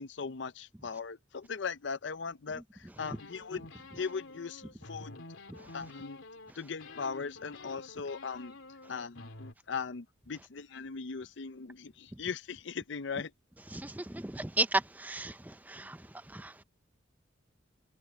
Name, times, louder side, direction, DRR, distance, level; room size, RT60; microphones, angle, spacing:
voice 1, 0.0-3.7 4.0-5.3 5.7-6.2 6.5-8.6 8.9-13.3, left 5 dB, 60° left, 0.6 m, -39 dB
sound 1, 3.0-6.5 6.8-9.5, left 2 dB, 75° left, 2.7 m, -49 dB
voice 2, 13.7-16.6, right 2 dB, 10° right, 0.5 m, -35 dB
head